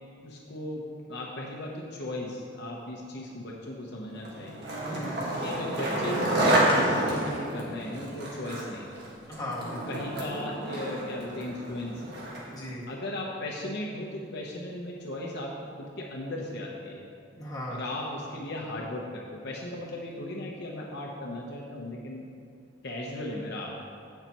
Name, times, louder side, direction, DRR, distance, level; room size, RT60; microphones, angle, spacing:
voice 1, 0.2-4.7 5.4-8.9 9.7-12.2 12.9-15.5 15.8-17.1 17.7-22.3 22.8-23.8, left 1 dB, 65° left, -2 dB, 1.0 m, -36 dB
Skateboard, 4.2-12.6, right 1 dB, 60° right, 1.8 m, -29 dB
voice 2, 4.8-5.3 9.3-9.8 12.5-12.9 17.4-17.8, left 1 dB, 20° left, -6 dB, 1.9 m, -37 dB
16.0 x 5.8 x 3.0 m, 2.3 s
head